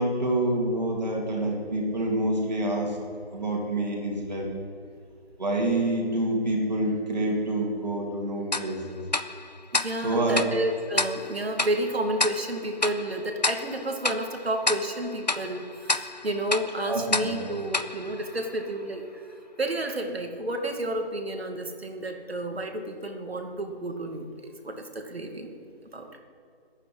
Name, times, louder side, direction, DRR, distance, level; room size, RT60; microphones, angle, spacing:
voice 1, 0.0-2.9 3.3-4.5 5.4-9.0 10.0-10.5 16.9-17.3, right 1 dB, 40° right, -1 dB, 3.2 m, -27 dB
Tick-tock, 8.5-19.0, left 3 dB, 45° left, 0.6 m, -31 dB
voice 2, 9.7-19.0 19.6-25.6 25.9-26.2, right 1 dB, 70° right, 4 dB, 2.4 m, -31 dB
11.0 x 9.1 x 9.7 m, 2.3 s
figure-of-eight pair, 175°, 31 cm